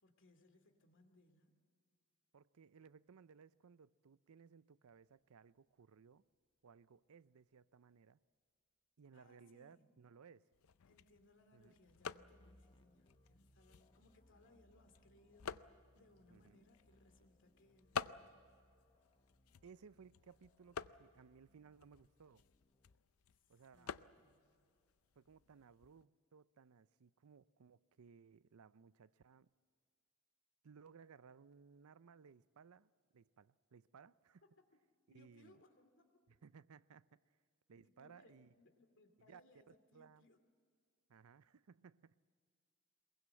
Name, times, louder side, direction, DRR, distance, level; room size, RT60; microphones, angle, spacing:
voice 1, 0.0-1.6 9.1-10.0 10.9-18.4 23.5-24.6 34.4-34.5 35.1-36.2 37.7-40.4, left 2 dB, 60° left, 2.5 m, -69 dB
voice 2, 2.3-6.2 6.6-8.2 9.0-10.5 11.5-11.8 16.3-16.6 19.6-22.4 23.5-24.0 25.2-29.5 30.6-34.4 35.1-35.6 36.3-37.4 37.7-38.5 39.3-39.4 39.7-40.3 41.1-42.2, right 6 dB, 85° right, 0.5 m, -62 dB
sound 1, 10.5-26.0, left 6 dB, 75° left, 0.5 m, -52 dB
sound 2, 12.2-23.0, left 1 dB, 25° left, 0.9 m, -72 dB
23.0 x 22.0 x 7.7 m
head